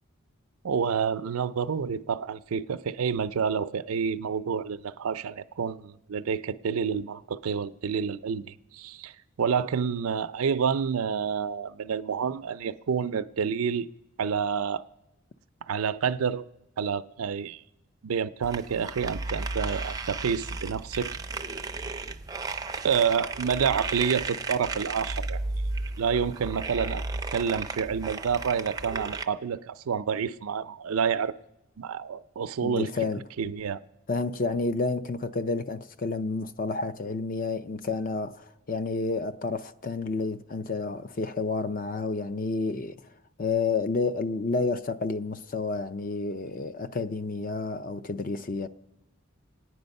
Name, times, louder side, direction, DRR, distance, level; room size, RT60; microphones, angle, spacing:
voice 1, 0.6-9.1 9.4-13.9 14.2-14.8 15.7-16.4 16.8-17.6 18.0-21.2 22.8-25.4 26.0-27.0 27.3-31.3 31.8-32.9 33.4-33.8, right 6 dB, 85° right, 0.5 m, -28 dB
sound 1, 18.4-29.2, right 3 dB, 15° right, 0.4 m, -34 dB
voice 2, 32.6-33.2 34.1-43.0 43.4-48.7, left 3 dB, 40° left, 0.5 m, -30 dB
27.0 x 9.3 x 5.3 m
head